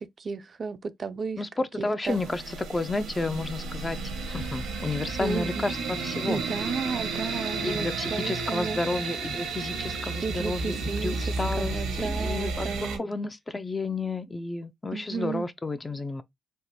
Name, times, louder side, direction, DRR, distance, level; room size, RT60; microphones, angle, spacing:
voice 1, 0.0-1.4 1.8-2.2 5.2-5.7 6.3-8.8 10.2-13.1 14.9-15.5, right 5 dB, 50° right, 0.3 m, -33 dB
voice 2, 1.4-4.0 4.3-6.4 7.6-16.2, left 3 dB, 25° left, 0.4 m, -31 dB
sound 1, 2.1-13.0, right 4 dB, 85° right, 0.7 m, -32 dB
3.3 x 2.0 x 2.6 m
supercardioid pair, 60°, 0 cm